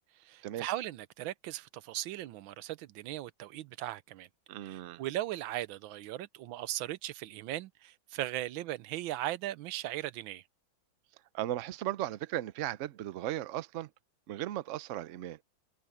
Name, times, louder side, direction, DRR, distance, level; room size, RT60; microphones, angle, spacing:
voice 1, 0.1-4.3 4.6-10.4, right 14 dB, 90° right, 1.5 m, -38 dB
voice 2, 4.5-5.0 11.3-13.9 14.3-15.4, right 13 dB, 70° right, 0.7 m, -36 dB
omnidirectional pair, 2.1 m